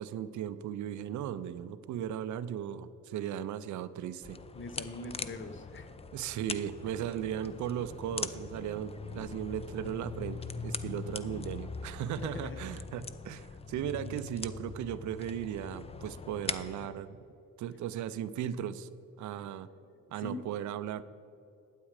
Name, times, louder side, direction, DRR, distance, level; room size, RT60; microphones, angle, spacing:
voice 1, 0.0-4.4 6.1-17.2 17.6-18.9 19.2-19.7 20.1-21.0, right 10 dB, 75° right, 14 dB, 0.6 m, -37 dB
sound 1, 4.2-16.9, left 4 dB, 20° left, 0.5 m, -42 dB
voice 2, 4.5-5.9 12.2-13.0 13.8-14.2 19.6-19.9 20.2-20.4, left 2 dB, 40° left, 10 dB, 0.9 m, -43 dB
12.0 x 8.5 x 4.9 m, 2.7 s
cardioid pair, 90°, 30 cm